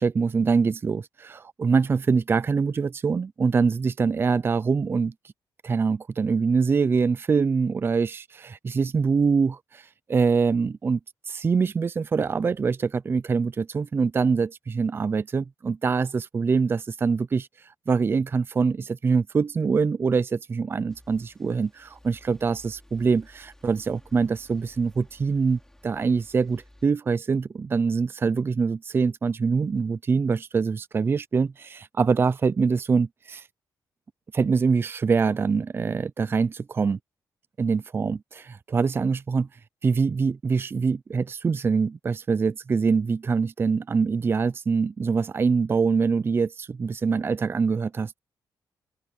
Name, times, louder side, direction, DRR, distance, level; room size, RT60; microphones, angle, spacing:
voice 1, 0.0-5.1 5.6-11.0 11.3-17.5 17.9-33.4 34.3-37.0 37.6-39.5 39.8-48.2, right 5 dB, 30° right, 0.4 m, -24 dB
sound 1, 20.9-26.9, left 1 dB, 5° left, 4.4 m, -54 dB
open air
cardioid pair, 120°, 8 cm